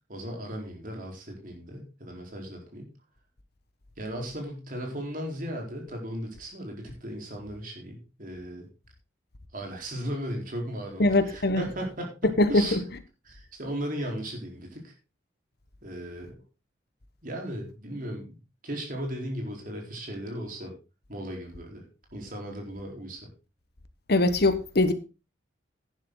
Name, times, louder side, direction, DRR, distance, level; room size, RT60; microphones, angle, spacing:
voice 1, 0.1-2.9 4.0-8.7 9.5-12.8 13.2-14.9 15.8-16.4 17.2-20.7 21.1-23.3, equal, 45° right, 4.1 m, -36 dB
voice 2, 11.0-11.6 12.4-12.8 24.1-24.9, left 2 dB, 60° left, 1.3 m, -22 dB
11.5 x 10.5 x 3.9 m
head